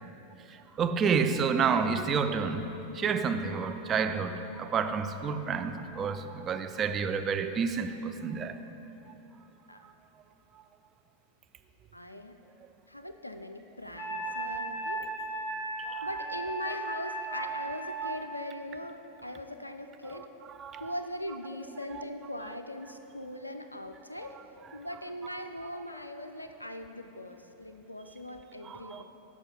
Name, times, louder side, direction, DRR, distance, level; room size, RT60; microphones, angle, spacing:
voice 1, 0.8-2.7 2.9-8.6 15.9-16.0 20.6-20.9 28.7-29.0, right 6 dB, 25° right, 0.4 m, -29 dB
voice 2, 11.9-12.4 12.9-15.0 15.3-15.5 16.0-20.3 20.8-24.4 24.7-29.0, left 1 dB, 85° left, 0.3 m, -40 dB
Wind instrument woodwind instrument, 14.0-18.2, right 2 dB, 35° left, 0.8 m, -36 dB
7.1 x 4.8 x 5.4 m
figure-of-eight pair, 90°, 0 cm